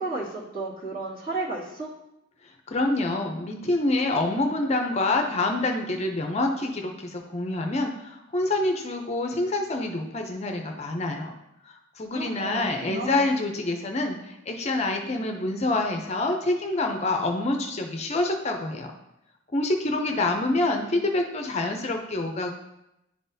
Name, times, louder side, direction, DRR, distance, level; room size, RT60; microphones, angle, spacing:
voice 1, 0.0-1.9 12.1-13.3, right 2 dB, 45° right, -7 dB, 1.9 m, -33 dB
voice 2, 2.7-11.4 11.7-18.9 19.5-22.5, left 2 dB, 30° left, 3 dB, 0.5 m, -26 dB
10.5 x 3.9 x 2.7 m, 0.86 s
head